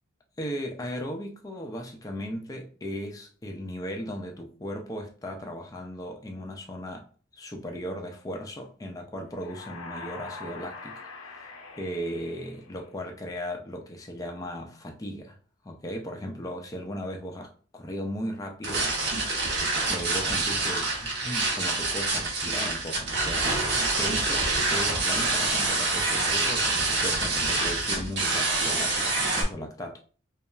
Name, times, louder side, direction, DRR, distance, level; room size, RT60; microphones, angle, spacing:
voice 1, 0.4-7.1 7.3-11.5 11.8-15.4 15.6-19.1 19.9-30.0, equal, 15° left, 0.3 m, -37 dB
sound 1, 9.3-13.2, left 3 dB, 75° left, 0.5 m, -43 dB
sound 2, 18.6-29.4, right 3 dB, 55° right, 0.8 m, -26 dB
2.9 x 2.3 x 2.2 m
head